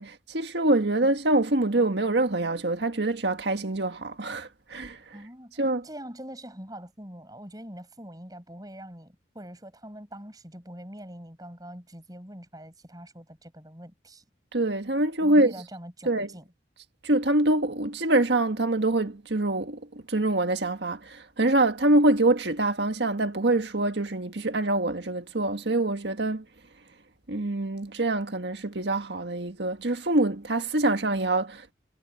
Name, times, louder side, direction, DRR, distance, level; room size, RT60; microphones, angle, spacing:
voice 1, 0.0-5.0 5.6-5.9 14.5-15.5 16.1-16.3 17.0-26.5 27.3-31.7, right 2 dB, 70° right, 1.6 m, -25 dB
voice 2, 5.1-14.2 15.2-16.5, equal, 20° right, 7.6 m, -44 dB
head